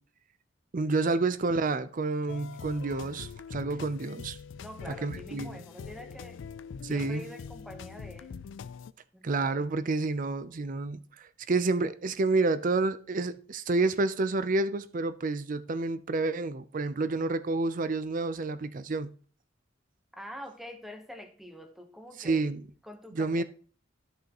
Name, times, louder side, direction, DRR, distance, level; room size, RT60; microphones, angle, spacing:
voice 1, 0.7-4.4 4.9-5.6 6.8-7.2 9.2-11.0 11.5-19.1 22.2-22.6 23.2-23.4, right 3 dB, 40° right, 0.5 m, -29 dB
sound 1, 2.3-8.9, left 6 dB, 65° left, 0.4 m, -43 dB
voice 2, 4.6-6.4 6.9-8.4 9.1-9.7 20.1-22.5 22.8-23.4, equal, ahead, 0.9 m, -46 dB
12.5 x 5.6 x 3.0 m
head